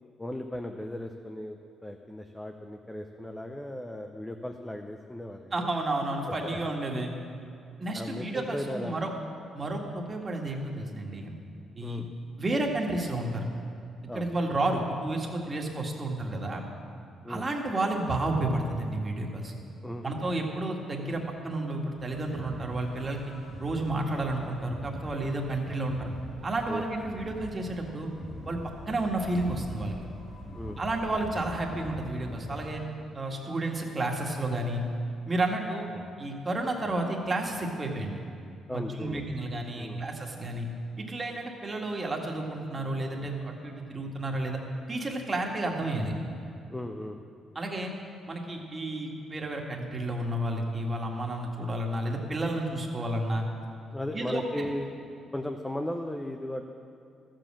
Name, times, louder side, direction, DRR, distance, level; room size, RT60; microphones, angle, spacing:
voice 1, 0.2-5.7 6.3-6.6 7.9-8.9 11.8-12.1 14.1-14.3 17.2-17.5 19.8-20.3 26.7-26.8 30.5-30.8 35.9-36.1 38.7-39.4 39.7-40.0 46.7-47.2 53.9-54.9 55.3-56.7, left 1 dB, 10° left, 4 dB, 0.7 m, -36 dB
voice 2, 5.5-7.1 7.8-9.1 9.5-11.4 11.8-12.0 12.4-13.4 14.1-16.6 17.3-19.5 20.0-23.2 23.6-26.1 26.4-28.1 28.5-28.6 28.9-30.0 30.8-32.8 33.1-34.8 35.3-35.9 36.2-38.2 38.7-40.7 41.0-44.6 44.9-46.1 47.6-47.9 48.3-53.5 54.1-54.7, right 2 dB, 30° right, 1 dB, 1.8 m, -31 dB
sound 1, 22.0-32.7, equal, 50° left, 3.4 m, -43 dB
13.0 x 7.6 x 7.3 m, 2.4 s
cardioid pair, 90°, 0 cm